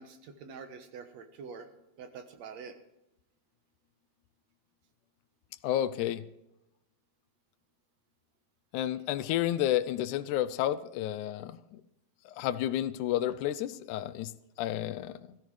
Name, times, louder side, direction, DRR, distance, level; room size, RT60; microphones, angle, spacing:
voice 1, 0.0-1.7 2.0-2.8, right 5 dB, 65° right, 7 dB, 2.2 m, -45 dB
voice 2, 5.6-6.2 8.7-11.8 12.4-14.3 14.6-15.4, left 12 dB, 80° left, 14 dB, 2.0 m, -31 dB
17.5 x 15.0 x 3.2 m, 0.88 s
omnidirectional pair, 3.5 m